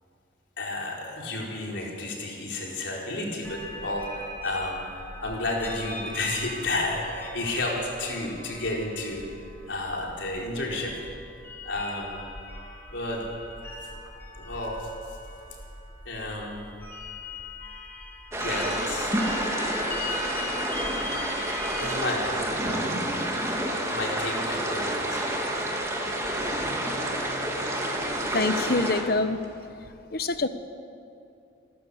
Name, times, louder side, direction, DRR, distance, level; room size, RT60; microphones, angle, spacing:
voice 1, 0.6-11.1 11.6-12.2 12.9-13.4 14.3-14.9 16.0-16.8 18.4-19.2 21.7-22.6 23.9-25.3 30.2-30.3, left 2 dB, 70° left, -2 dB, 4.3 m, -32 dB
sound 1, 3.4-22.0, left 2 dB, 10° left, 2.9 m, -40 dB
sound 2, 18.3-29.0, right 1 dB, 15° right, 2.4 m, -29 dB
sound 3, 22.2-29.7, right 1 dB, 65° right, 3.4 m, -44 dB
voice 2, 28.3-29.4 30.1-30.5, left 3 dB, 50° left, 10 dB, 1.0 m, -25 dB
28.0 x 13.0 x 8.5 m, 2.6 s
head